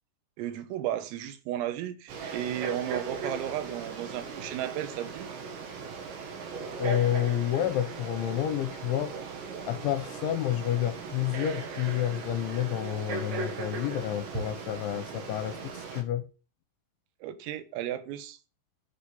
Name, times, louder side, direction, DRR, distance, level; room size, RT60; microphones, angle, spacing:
voice 1, 0.4-5.3 17.2-18.4, right 12 dB, 80° right, 3.8 m, -34 dB
Frog, 2.1-16.0, right 4 dB, 65° right, 3.9 m, -38 dB
voice 2, 6.8-9.1 9.7-16.3, left 11 dB, 75° left, 2.9 m, -29 dB
10.5 x 10.5 x 5.3 m
omnidirectional pair, 6.0 m